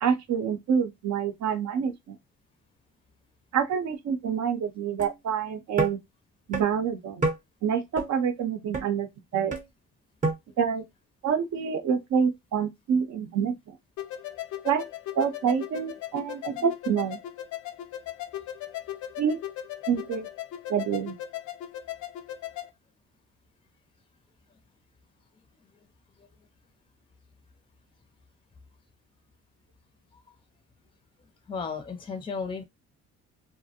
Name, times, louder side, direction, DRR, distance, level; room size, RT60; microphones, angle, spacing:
voice 1, 0.0-2.2 3.5-6.0 6.5-7.3 7.6-9.6 10.6-10.8 11.2-13.7 14.6-14.8 15.2-17.2 19.2-19.4 19.9-20.3 20.7-21.2, right 7 dB, 65° right, 0.6 m, -27 dB
sound 1, 5.0-5.1 5.8-5.9 6.5-6.6 7.2-7.4 8.0-8.1 8.7-8.9 9.5-9.7 10.2-10.3, right 3 dB, 25° right, 0.7 m, -26 dB
sound 2, 14.0-22.7, left 12 dB, 75° left, 0.4 m, -38 dB
voice 2, 31.5-32.6, left 5 dB, 20° left, 0.5 m, -34 dB
2.4 x 2.0 x 2.7 m
cardioid pair, 90°, 30 cm